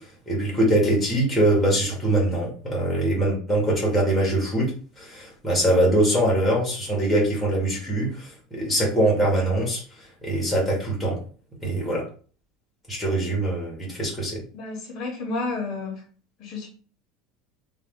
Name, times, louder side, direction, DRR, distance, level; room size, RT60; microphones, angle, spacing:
voice 1, 0.3-4.7 5.0-9.8 10.2-11.2 11.6-12.0 12.9-14.4, right 1 dB, 5° left, -3 dB, 1.0 m, -23 dB
voice 2, 14.5-16.0 16.4-16.7, left 3 dB, 35° left, 0 dB, 0.7 m, -31 dB
3.0 x 2.2 x 3.5 m, 0.41 s
cardioid pair, 180°, 0 cm